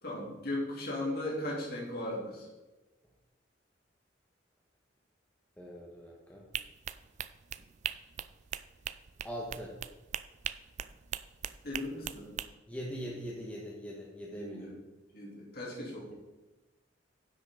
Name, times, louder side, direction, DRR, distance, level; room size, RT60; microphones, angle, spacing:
voice 1, 0.0-2.5 11.6-12.3 14.3-14.7 15.1-16.1, left 1 dB, 50° left, -3 dB, 3.4 m, -37 dB
voice 2, 5.6-6.5 9.2-9.7 12.7-14.7, equal, 10° left, -3 dB, 1.3 m, -41 dB
sound 1, 6.5-12.5, right 9 dB, 40° right, 0.3 m, -40 dB
10.0 x 8.0 x 3.9 m, 1.1 s
head